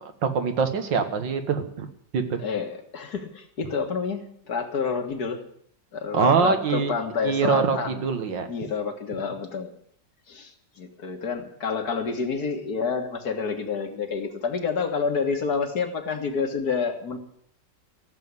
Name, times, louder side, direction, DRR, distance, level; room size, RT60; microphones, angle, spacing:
voice 1, 0.2-1.9 2.1-2.4 6.1-6.9 7.2-7.8 8.0-8.5, right 5 dB, 90° right, 7 dB, 2.2 m, -23 dB
voice 2, 2.4-5.4 5.9-8.1 8.5-9.7 10.3-17.2, left 5 dB, 60° left, 5 dB, 2.1 m, -28 dB
15.0 x 7.6 x 9.6 m, 0.67 s
omnidirectional pair, 1.9 m